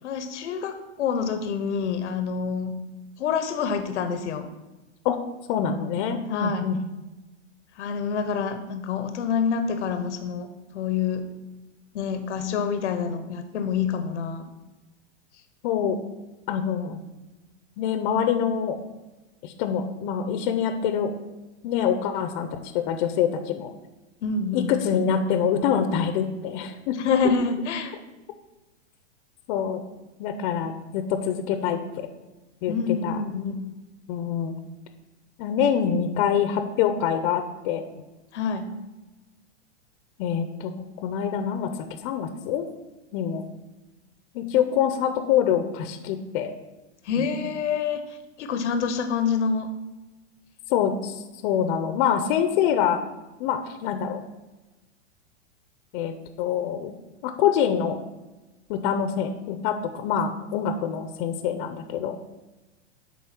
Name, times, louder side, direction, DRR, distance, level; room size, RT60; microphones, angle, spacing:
voice 1, 0.0-2.7 3.2-4.5 6.3-6.7 7.8-11.3 11.9-14.4 24.2-24.7 27.0-27.9 32.7-33.6 38.3-38.7 47.0-48.0 48.4-49.7, left 6 dB, 80° left, 8 dB, 0.9 m, -27 dB
voice 2, 5.5-6.8 15.6-16.0 16.5-17.0 17.8-18.8 19.4-21.1 21.6-23.7 24.5-27.0 29.5-29.9 30.2-32.1 32.6-32.7 33.0-33.2 34.1-34.6 35.4-37.8 40.2-41.7 42.0-42.7 43.1-43.4 44.3-46.5 47.2-47.3 50.7-53.0 53.4-54.2 55.9-56.9 57.2-58.0 58.7-62.2, left 8 dB, 45° left, 8 dB, 0.7 m, -25 dB
8.5 x 3.8 x 5.9 m, 1.1 s
hypercardioid pair, 130°, 35 cm